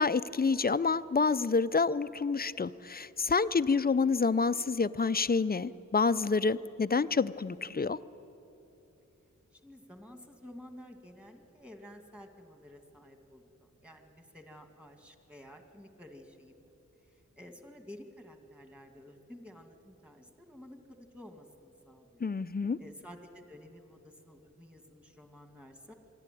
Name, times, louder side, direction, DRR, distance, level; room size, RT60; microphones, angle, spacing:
voice 1, 0.0-8.0 22.2-22.8, left 4 dB, 30° left, 15 dB, 0.5 m, -28 dB
voice 2, 9.5-16.5 17.4-22.3 22.8-25.9, left 1 dB, 5° right, 5 dB, 2.2 m, -52 dB
25.5 x 11.5 x 9.2 m, 3.0 s
cardioid pair, 55°, 30 cm